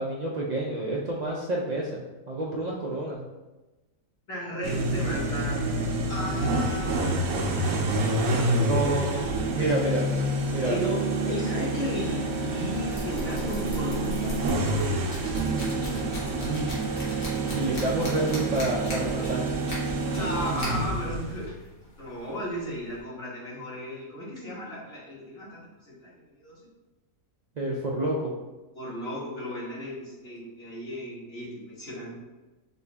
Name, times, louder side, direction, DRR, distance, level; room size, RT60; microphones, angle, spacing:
voice 1, 0.0-3.2 8.5-10.1 10.5-10.8 16.4-17.1 17.5-19.4 27.6-28.3, right 1 dB, 60° right, -4 dB, 0.4 m, -29 dB
voice 2, 4.3-5.7 6.1-8.9 9.6-9.8 10.6-15.1 20.0-21.5 22.0-26.6 28.7-32.2, left 1 dB, 50° left, -6 dB, 1.7 m, -35 dB
sound 1, 4.6-21.5, right 2 dB, 80° right, 1.1 m, -28 dB
sound 2, 12.2-23.0, equal, 85° left, 1.7 m, -40 dB
5.3 x 2.6 x 3.3 m, 1.1 s
omnidirectional pair, 1.4 m